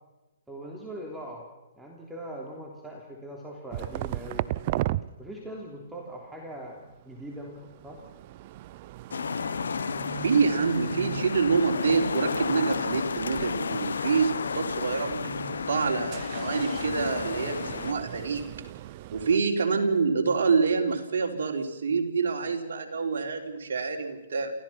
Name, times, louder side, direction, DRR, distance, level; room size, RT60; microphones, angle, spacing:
voice 1, 0.5-1.4 1.8-4.5 5.2-8.0, right 1 dB, 5° right, -1 dB, 3.3 m, -41 dB
sound 1, 3.7-5.0 6.6-19.4, right 16 dB, 40° right, 0.7 m, -38 dB
sound 2, 9.1-17.9, left 6 dB, 80° left, 0.9 m, -32 dB
voice 2, 10.2-18.5 19.1-24.5, right 5 dB, 70° right, 2 dB, 4.0 m, -26 dB
28.5 x 15.5 x 6.0 m, 1.0 s
hypercardioid pair, 140°, 0 cm